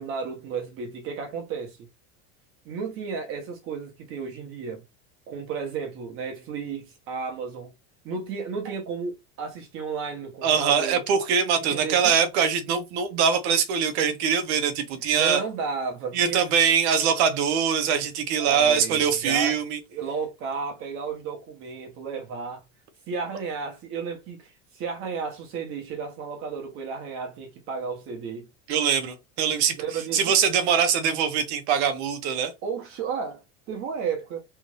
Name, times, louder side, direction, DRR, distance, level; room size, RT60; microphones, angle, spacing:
voice 1, 0.0-1.8 2.6-4.8 5.3-7.7 8.0-11.0 11.6-12.1 15.1-16.4 18.4-19.6 19.9-22.6 23.1-28.5 29.8-30.2 32.6-34.4, right 5 dB, 35° right, 1.2 m, -33 dB
voice 2, 10.4-15.4 16.1-19.8 28.7-32.5, right 7 dB, 65° right, 1.1 m, -23 dB
3.4 x 2.7 x 3.2 m
cardioid pair, 170°, 36 cm